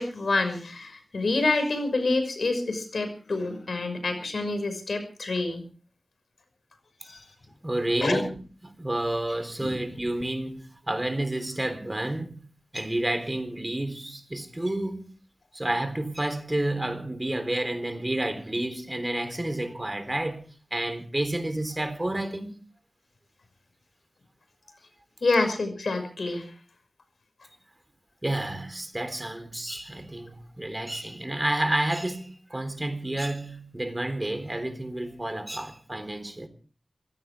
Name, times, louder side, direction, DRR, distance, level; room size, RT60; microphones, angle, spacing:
voice 1, 0.0-5.6 7.0-7.2 8.0-8.2 9.6-9.8 25.2-26.5, left 3 dB, 85° left, 5.8 m, -27 dB
voice 2, 7.6-12.5 12.7-15.1 15.5-20.4 20.7-22.6 28.2-36.5, right 1 dB, 25° right, 3.6 m, -30 dB
25.0 x 16.5 x 3.4 m
wide cardioid pair, 60°, 0 cm